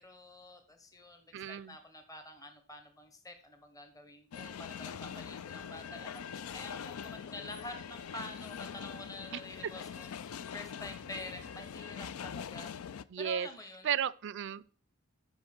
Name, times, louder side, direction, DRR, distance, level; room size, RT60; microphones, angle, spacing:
voice 1, 0.0-12.7 13.2-14.0, left 2 dB, 15° left, 1.0 m, -48 dB
voice 2, 1.3-1.8 13.1-13.5 13.8-14.6, right 9 dB, 60° right, 0.4 m, -34 dB
sound 1, 4.3-13.0, left 7 dB, 85° left, 0.4 m, -43 dB
12.5 x 4.7 x 4.3 m
head